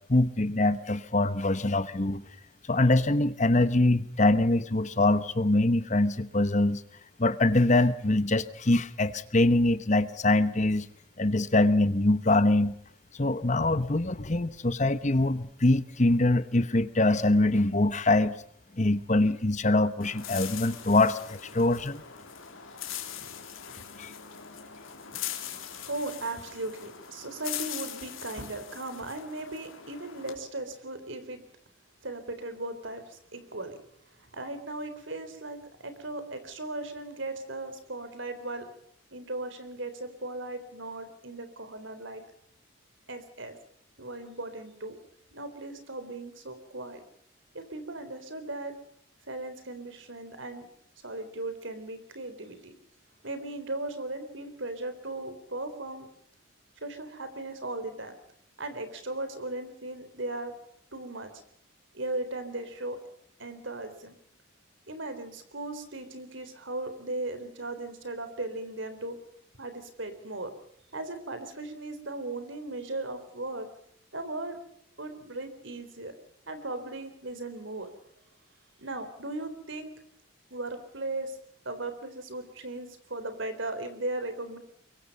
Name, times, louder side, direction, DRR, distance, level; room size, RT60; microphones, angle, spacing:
voice 1, 0.1-2.2 2.7-6.8 7.2-10.9 11.2-12.7 13.2-18.3 18.8-22.0 24.0-24.1, left 2 dB, 35° left, 13 dB, 1.1 m, -24 dB
sound 1, 20.0-30.4, left 10 dB, 70° left, 3.5 m, -41 dB
voice 2, 25.8-31.4 32.0-33.8 34.3-38.7 39.1-42.2 43.1-43.6 44.0-45.0 45.3-47.0 47.5-48.7 49.3-50.7 51.0-52.7 53.2-56.1 56.8-58.1 58.6-60.5 60.9-61.3 61.9-63.0 63.4-64.1 64.9-69.2 69.6-70.5 70.9-73.7 74.1-74.6 75.0-76.1 76.5-77.9 78.8-79.9 80.5-81.4 81.6-84.6, right 2 dB, 65° right, 9 dB, 3.9 m, -37 dB
24.5 x 23.0 x 5.4 m, 0.68 s
head